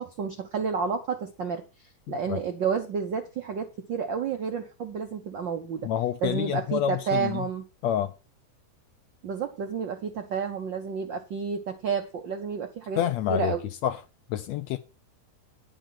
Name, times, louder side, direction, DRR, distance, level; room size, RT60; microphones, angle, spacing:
voice 1, 0.0-5.9 6.2-7.6 9.2-13.0 13.3-13.6, right 6 dB, 80° right, 1.0 m, -30 dB
voice 2, 5.8-7.5 7.8-8.1 13.0-13.5 13.8-14.0 14.3-14.8, left 11 dB, 75° left, 1.7 m, -27 dB
10.5 x 6.3 x 5.8 m
omnidirectional pair, 3.6 m